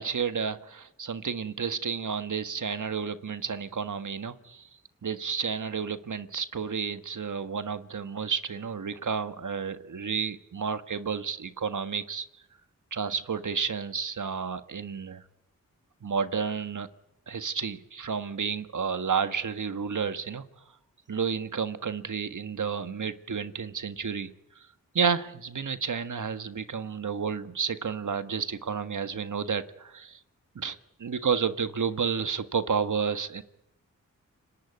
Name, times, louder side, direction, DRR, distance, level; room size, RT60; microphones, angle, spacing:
voice 1, 0.0-4.6 5.0-12.3 12.9-15.2 16.0-16.9 17.3-20.4 21.1-24.3 24.9-30.2 30.5-33.4, right 6 dB, 65° right, 11 dB, 1.6 m, -31 dB
29.5 x 19.0 x 9.4 m, 0.85 s
cardioid pair, 40°, 33 cm